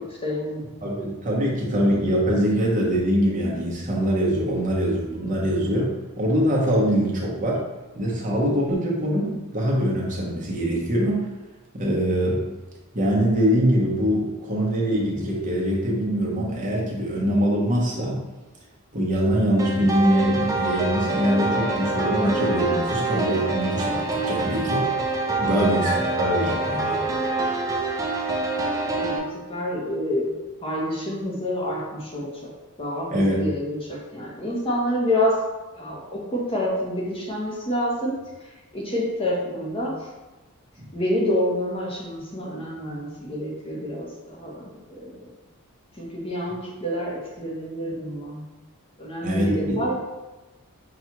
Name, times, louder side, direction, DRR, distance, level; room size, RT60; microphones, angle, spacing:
voice 1, 0.2-0.6 25.4-25.6 28.9-29.2 29.5-30.3 30.6-32.5 32.8-35.4 35.7-38.1 38.7-39.9 40.9-45.2 46.0-48.4 49.0-50.0, equal, 25° left, -4 dB, 0.8 m, -28 dB
voice 2, 0.8-7.6 7.9-11.2 11.7-12.4 12.9-18.2 18.9-24.8 25.4-27.0 33.1-33.4 40.8-40.9 49.2-49.8, equal, 35° right, -4 dB, 0.8 m, -23 dB
sound 1, 19.6-29.2, right 2 dB, 15° right, 0.5 m, -26 dB
5.7 x 2.3 x 2.9 m, 1.1 s
head